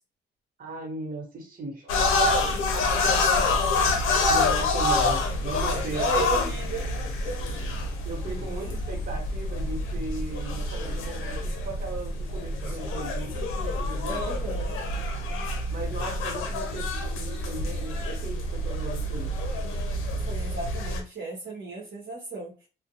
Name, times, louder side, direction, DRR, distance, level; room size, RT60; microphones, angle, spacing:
voice 1, 0.6-2.1 2.6-3.1 4.3-6.5 8.0-14.3 14.6-15.0 15.7-19.3, right 2 dB, 45° right, 0 dB, 1.2 m, -37 dB
sound 1, 1.9-21.0, left 2 dB, 90° left, 0.6 m, -27 dB
voice 2, 3.0-3.7 5.9-6.9 7.3-7.4 12.7-12.8 14.0-14.8 20.3-22.5, right 3 dB, 65° right, -4 dB, 0.9 m, -34 dB
2.4 x 2.1 x 2.8 m, 0.34 s
cardioid pair, 90°, 20 cm